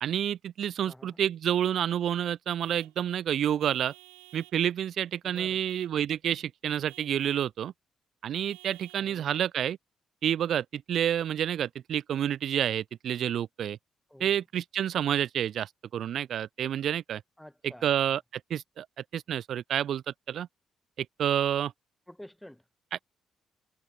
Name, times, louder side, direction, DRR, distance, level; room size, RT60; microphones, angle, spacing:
voice 1, 0.0-3.9 4.3-7.7 8.2-9.8 10.2-13.8 14.2-17.2 17.8-18.9 19.1-20.5 21.0-21.7, right 10 dB, 55° right, 0.3 m, -29 dB
voice 2, 0.8-1.2 5.2-5.6 9.0-9.3 14.1-14.4 17.4-17.9 22.1-22.6, left 1 dB, 5° left, 3.8 m, -49 dB
Vehicle horn car horn honking / Truck, 1.6-1.9 2.6-3.0 3.6-4.6 5.3-6.0 6.9-7.5 8.3-9.1, right 35 dB, 70° right, 2.1 m, -53 dB
figure-of-eight pair, 40°, 0 cm